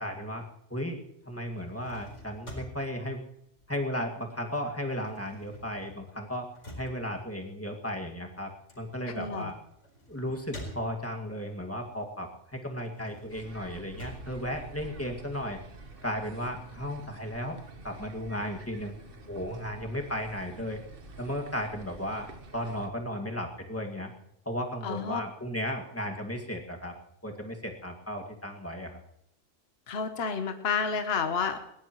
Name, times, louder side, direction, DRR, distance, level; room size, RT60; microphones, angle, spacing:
voice 1, 0.0-3.2 3.7-6.5 6.8-8.5 8.8-9.6 10.1-15.6 16.0-17.6 17.8-19.0 19.3-20.8 21.2-22.3 22.5-24.1 24.5-26.9 27.2-29.0, equal, 10° left, 1 dB, 2.1 m, -35 dB
sound 1, 1.5-4.3 4.6-11.4 11.8-15.4, left 1 dB, 80° left, 4.7 m, -48 dB
voice 2, 9.1-9.5 24.8-25.2 29.9-31.6, left 6 dB, 60° left, 7 dB, 1.3 m, -30 dB
sound 2, 13.3-22.9, right 2 dB, 50° right, 1.5 m, -48 dB
20.5 x 17.5 x 3.1 m, 0.78 s
omnidirectional pair, 1.2 m